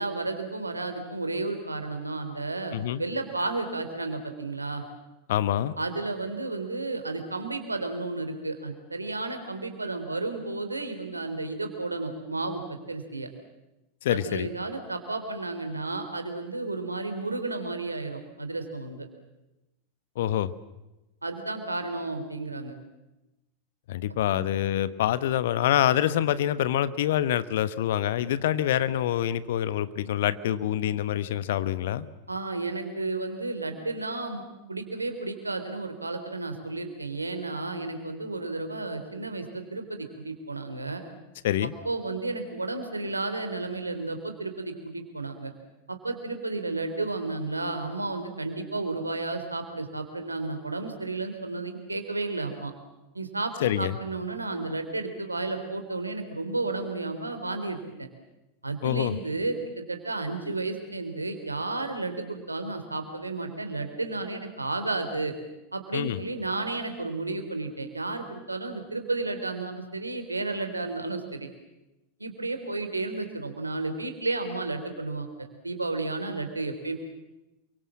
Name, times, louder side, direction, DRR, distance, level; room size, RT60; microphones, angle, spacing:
voice 1, 0.0-4.8 5.8-13.3 14.1-19.1 21.2-22.8 24.3-24.5 28.5-28.6 32.3-34.4 34.7-41.0 41.8-45.5 45.9-52.7 53.1-58.1 58.6-65.3 65.7-71.5 72.2-77.0, right 3 dB, 80° right, 7 dB, 3.6 m, -32 dB
voice 2, 5.3-5.7 14.0-14.5 20.2-20.5 23.9-32.1 41.4-41.7 53.6-53.9 58.8-59.1 65.9-66.2, left 11 dB, 55° left, 15 dB, 1.2 m, -26 dB
28.5 x 24.0 x 7.5 m, 1.0 s
figure-of-eight pair, 90°, 0 cm